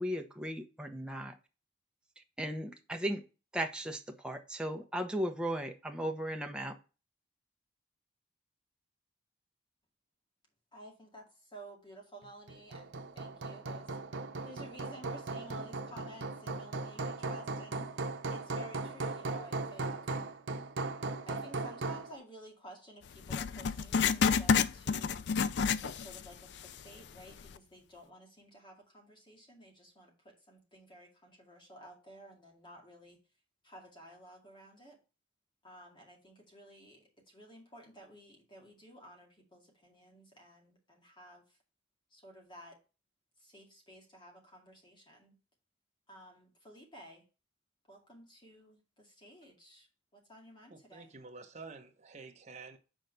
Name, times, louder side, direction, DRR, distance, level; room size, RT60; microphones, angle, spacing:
voice 1, 0.0-1.3 2.4-3.2 3.5-6.7, equal, 5° right, 0.9 m, -36 dB
voice 2, 10.7-14.0 14.4-20.1 21.3-25.3 25.8-33.2 33.6-35.0 35.6-41.6 42.1-42.8 43.4-45.3 46.1-47.2 47.9-49.9 50.1-51.1, equal, 25° left, 2.2 m, -53 dB
Hammer, 12.5-22.1, right 3 dB, 85° right, 0.8 m, -38 dB
Writing, 23.3-26.3 26.6-26.7 27.4-27.5, left 6 dB, 65° left, 0.4 m, -29 dB
voice 3, 50.7-52.8, right 4 dB, 40° right, 1.1 m, -49 dB
6.3 x 4.5 x 5.3 m
head